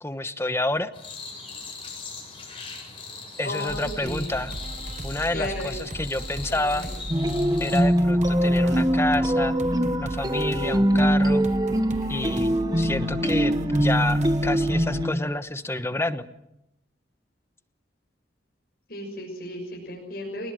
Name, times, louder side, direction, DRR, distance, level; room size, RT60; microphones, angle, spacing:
voice 1, 0.0-0.9 3.4-4.5 5.0-6.9 7.6-9.5 10.0-11.5 12.1-16.3, left 1 dB, 15° left, 11 dB, 1.1 m, -28 dB
sound 1, 0.9-7.8, left 4 dB, 30° left, 7.9 m, -40 dB
voice 2, 3.4-4.4 5.3-5.8 6.5-7.0 18.9-20.5, left 1 dB, 55° left, -1 dB, 6.3 m, -34 dB
sound 2, 3.7-15.0, right 1 dB, 40° right, 1.1 m, -37 dB
sound 3, 7.1-15.1, equal, 20° right, 1.4 m, -23 dB
29.0 x 19.5 x 7.6 m, 0.84 s
head